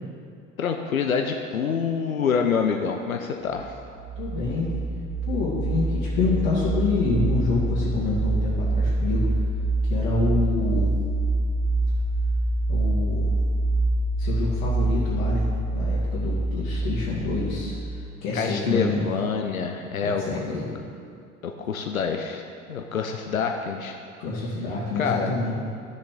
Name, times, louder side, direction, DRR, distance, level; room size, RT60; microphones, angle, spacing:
voice 1, 0.6-3.7 18.3-20.2 21.4-22.4 22.7-24.0 25.0-25.3, left 6 dB, 85° left, 4 dB, 0.6 m, -26 dB
sound 1, 3.6-18.1, right 2 dB, 30° right, 0.7 m, -25 dB
voice 2, 4.2-4.7 5.3-9.3 9.9-10.9 12.7-13.3 14.2-15.5 15.7-19.0 20.0-20.7 24.2-25.5, left 3 dB, 60° left, -8 dB, 2.1 m, -27 dB
12.5 x 6.7 x 3.8 m, 2.4 s
figure-of-eight pair, 70°, 41 cm